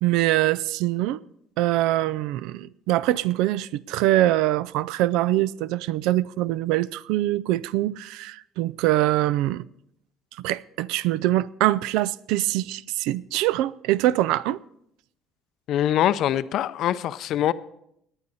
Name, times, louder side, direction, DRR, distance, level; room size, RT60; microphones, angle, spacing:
voice 1, 0.0-1.2 1.6-9.7 10.4-14.6, right 15 dB, 80° right, 0.4 m, -23 dB
voice 2, 15.7-17.5, left 11 dB, 55° left, 0.5 m, -23 dB
18.0 x 9.7 x 4.1 m
cardioid pair, 140°, 0 cm